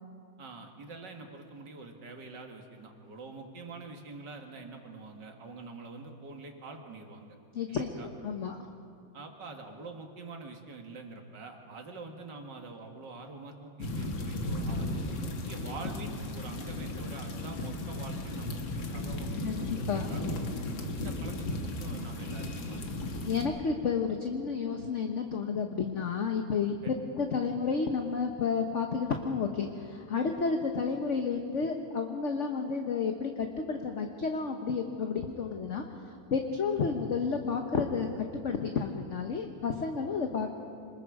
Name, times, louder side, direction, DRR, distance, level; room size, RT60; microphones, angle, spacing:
voice 1, 0.4-7.4 7.7-8.1 9.1-20.2 20.8-22.8 23.3-23.6 26.8-26.9, right 3 dB, 65° right, 3 dB, 2.3 m, -45 dB
voice 2, 7.5-8.6 19.4-20.1 23.3-40.5, left 5 dB, 45° left, 4 dB, 1.1 m, -31 dB
sound 1, 13.8-23.5, left 1 dB, 85° left, 2.4 m, -35 dB
26.0 x 20.5 x 4.8 m, 2.6 s
omnidirectional pair, 2.1 m